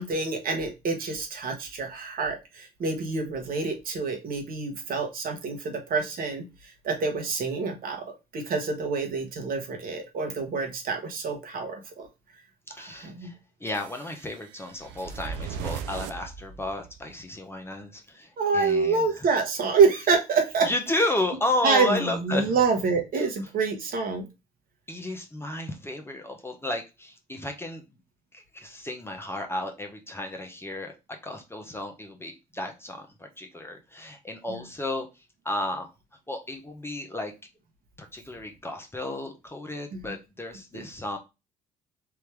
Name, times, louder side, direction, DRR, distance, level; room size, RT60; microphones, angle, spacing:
voice 1, 0.0-8.0 8.3-12.1 12.8-13.3 18.4-20.7 21.6-24.3 34.5-34.6 39.9-40.1 40.7-40.8, right 4 dB, 50° right, 3 dB, 1.4 m, -27 dB
voice 2, 12.7-13.3 13.6-19.0 20.6-22.5 24.9-27.8 28.3-35.1 35.4-35.9 36.3-37.3 38.0-41.2, left 1 dB, 15° left, 3 dB, 1.1 m, -32 dB
sound 1, 13.7-17.1, right 7 dB, 70° right, 0.5 m, -38 dB
3.5 x 2.9 x 3.3 m, 0.25 s
hypercardioid pair, 60°, 19 cm